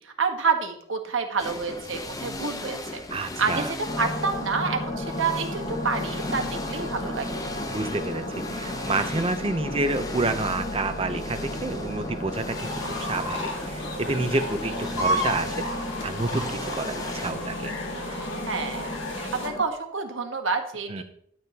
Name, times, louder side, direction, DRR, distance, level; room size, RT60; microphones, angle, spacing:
voice 1, 0.0-7.4 18.0-18.2 18.5-21.0, right 5 dB, 70° right, 5 dB, 1.4 m, -29 dB
sound 1, 1.4-17.3, left 2 dB, 15° left, 0.7 m, -38 dB
voice 2, 3.1-3.7 7.7-15.7 16.0-17.7 20.9-21.0, right 2 dB, 30° right, 8 dB, 0.7 m, -29 dB
sound 2, 3.9-19.6, left 1 dB, 40° left, 1.5 m, -34 dB
sound 3, 12.5-19.5, left 1 dB, 65° left, 2.1 m, -33 dB
12.5 x 7.7 x 2.9 m, 0.66 s
head